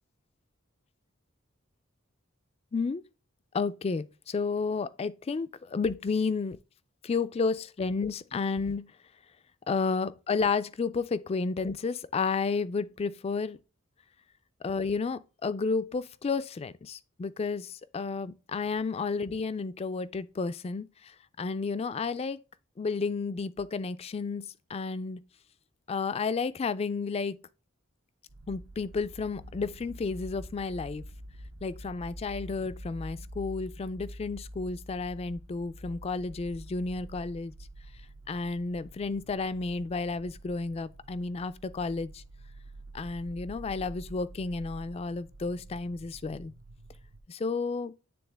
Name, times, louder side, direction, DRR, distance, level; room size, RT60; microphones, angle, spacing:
voice 1, 2.7-3.0 3.5-6.6 7.0-8.9 9.7-13.6 14.6-22.4 22.8-25.2 25.9-27.4 28.5-31.0 31.6-37.5 38.3-42.2 42.9-46.5 47.3-47.9, left 4 dB, 30° left, 0.3 m, -32 dB
sound 1, 28.3-47.2, right 1 dB, 70° right, 0.8 m, -47 dB
9.3 x 3.6 x 3.4 m
head